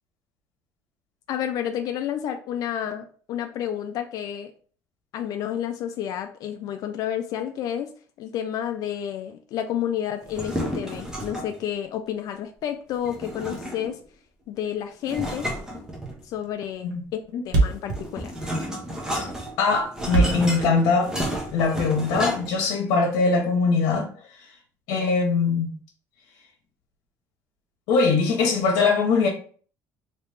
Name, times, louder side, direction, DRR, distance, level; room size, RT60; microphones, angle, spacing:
voice 1, 1.3-4.5 5.1-7.9 8.2-14.0 14.5-15.5 16.2-17.2 17.4-18.3, left 10 dB, 60° left, 7 dB, 0.3 m, -30 dB
sound 1, 10.2-11.6 13.0-14.0 15.1-16.4 17.6-22.7, equal, 10° right, 0.9 m, -32 dB
Thump thud, 16.1-16.3 16.6-16.7 16.9-17.0 17.2-17.3 17.5-21.5, right 3 dB, 70° right, 1.0 m, -24 dB
voice 2, 19.6-21.1 21.5-24.1 24.9-25.7 27.9-29.3, left 4 dB, 75° left, 0 dB, 1.0 m, -21 dB
3.1 x 2.8 x 3.4 m, 0.44 s
cardioid pair, 130°, 7 cm